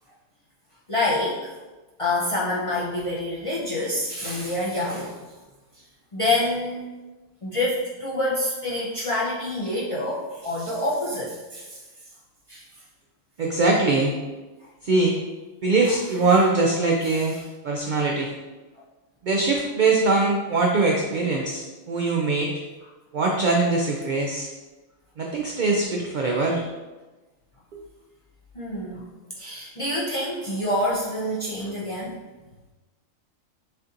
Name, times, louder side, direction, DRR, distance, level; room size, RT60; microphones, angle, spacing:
voice 1, 0.9-1.5 2.0-5.2 6.1-6.9 7.4-11.8 12.5-12.6 17.1-17.3 28.5-29.1 29.4-32.2, left 1 dB, 40° left, -7 dB, 0.4 m, -27 dB
voice 2, 13.4-14.1 14.8-15.2 15.6-17.3 17.6-18.3 19.2-22.5 23.1-24.5 25.2-26.7 27.7-27.8, right 3 dB, 75° right, 0 dB, 0.4 m, -22 dB
6.5 x 2.5 x 2.8 m, 1.2 s
omnidirectional pair, 1.4 m